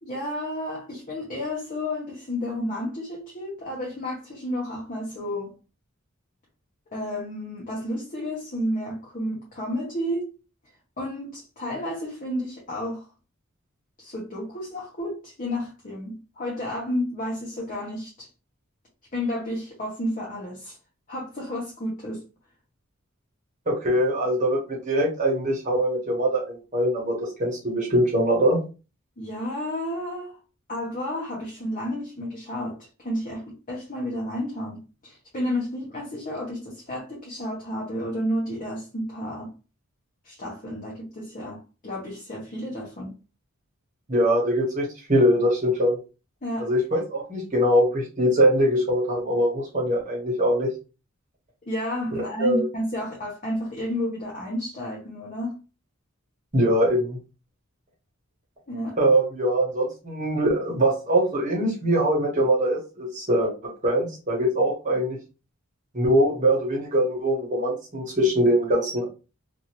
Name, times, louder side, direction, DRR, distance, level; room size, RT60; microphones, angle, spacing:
voice 1, 0.0-5.5 6.9-10.3 11.0-13.1 14.0-18.3 19.1-20.8 21.1-22.2 29.2-30.4 30.7-39.5 40.2-43.1 46.4-46.7 51.6-55.6 58.7-58.9, left 1 dB, 40° left, 0.9 m, -31 dB
voice 2, 23.7-28.6 44.1-46.0 46.6-50.7 52.4-52.7 56.5-57.2 59.0-65.2 65.9-69.0, equal, 35° right, 1.1 m, -22 dB
2.7 x 2.5 x 3.0 m
head